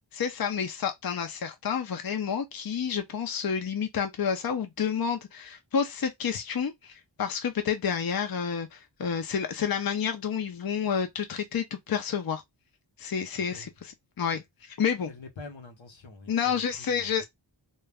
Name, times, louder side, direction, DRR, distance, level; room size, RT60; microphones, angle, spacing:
voice 1, 0.1-12.4 13.0-15.1 16.3-17.2, left 7 dB, 55° left, 0.5 m, -30 dB
voice 2, 13.3-13.7 15.1-17.2, left 3 dB, 80° left, 0.8 m, -46 dB
2.3 x 2.1 x 3.4 m
wide cardioid pair, 50°, 45 cm